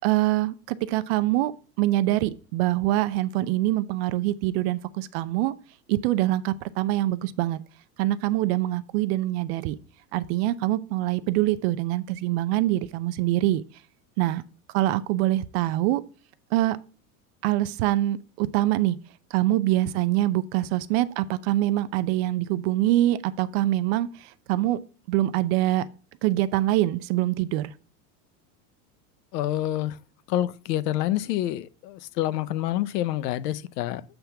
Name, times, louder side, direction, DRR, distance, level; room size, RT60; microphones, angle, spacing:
voice 1, 0.0-1.5 1.8-5.5 5.9-7.6 8.0-9.8 10.1-13.6 14.2-14.4 14.7-16.0 16.5-16.8 17.4-19.0 19.3-24.8 25.1-25.9 26.2-27.7, right 15 dB, 45° right, 0.4 m, -24 dB
voice 2, 29.3-30.0 30.3-34.0, left 13 dB, 90° left, 0.7 m, -27 dB
7.9 x 3.4 x 5.6 m
supercardioid pair, 150°, 46 cm